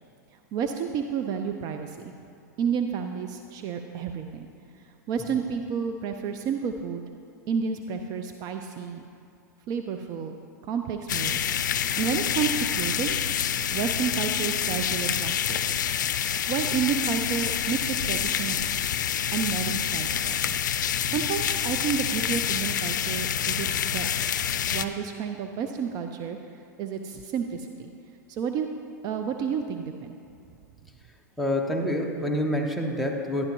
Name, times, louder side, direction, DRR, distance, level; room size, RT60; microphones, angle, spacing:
voice 1, 0.5-2.1 2.6-4.5 5.1-7.0 7.5-9.1 9.7-10.4 10.7-11.4 11.6-13.2 13.7-15.8 16.5-18.6 19.3-20.4 21.1-24.3 24.7-26.4 26.8-27.9 28.3-28.7 29.0-30.2, right 7 dB, 40° right, 6 dB, 0.5 m, -30 dB
sound 1, 11.1-24.9, left 9 dB, 80° left, 0.4 m, -27 dB
voice 2, 31.4-33.4, left 1 dB, ahead, 1 dB, 1.1 m, -27 dB
11.5 x 11.0 x 3.0 m, 2.5 s
hypercardioid pair, 110°, 10 cm